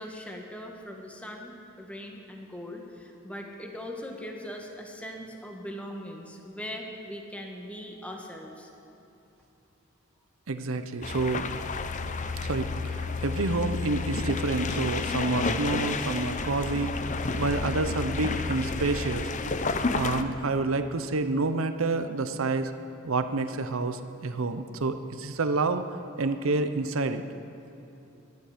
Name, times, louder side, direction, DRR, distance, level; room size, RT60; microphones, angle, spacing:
voice 1, 0.0-8.7, equal, 5° left, 1 dB, 1.5 m, -40 dB
voice 2, 10.5-11.4 12.4-16.9 17.4-19.3 19.9-22.7 23.0-25.8 26.2-27.2, right 3 dB, 85° right, 9 dB, 0.8 m, -28 dB
sound 1, 11.0-20.2, left 4 dB, 35° left, 0.6 m, -31 dB
24.0 x 10.5 x 5.1 m, 2.9 s
head